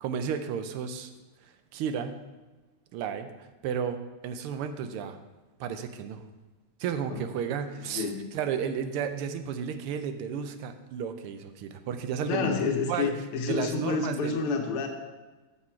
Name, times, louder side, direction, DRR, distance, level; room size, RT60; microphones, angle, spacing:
voice 1, 0.0-1.1 1.4-2.2 2.9-4.0 4.2-5.2 5.6-6.2 6.8-13.1 13.5-14.4, right 7 dB, 90° right, 9 dB, 1.6 m, -33 dB
voice 2, 12.3-14.9, left 4 dB, 90° left, 4 dB, 1.9 m, -29 dB
7.1 x 6.8 x 4.5 m, 1.2 s
omnidirectional pair, 2.4 m